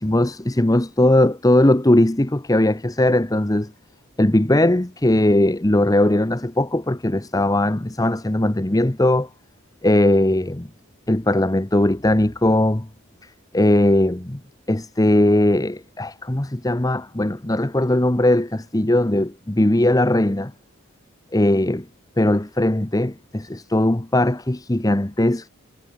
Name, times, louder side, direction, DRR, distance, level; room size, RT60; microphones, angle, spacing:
voice 1, 0.0-3.7 4.2-9.3 9.8-10.7 11.1-12.9 13.2-14.4 14.7-20.5 21.3-21.9 22.2-25.5, left 1 dB, 15° left, 0.8 m, -19 dB
head